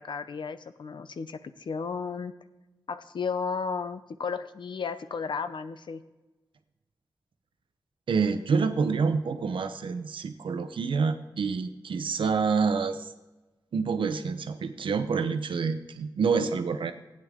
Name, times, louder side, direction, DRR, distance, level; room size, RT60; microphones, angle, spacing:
voice 1, 0.0-2.3 2.9-6.0, left 5 dB, 70° left, 11 dB, 0.7 m, -34 dB
voice 2, 8.1-13.1 13.7-16.9, right 5 dB, 85° right, 9 dB, 0.7 m, -27 dB
16.0 x 8.9 x 3.7 m, 1.1 s
cardioid pair, 70°, 8 cm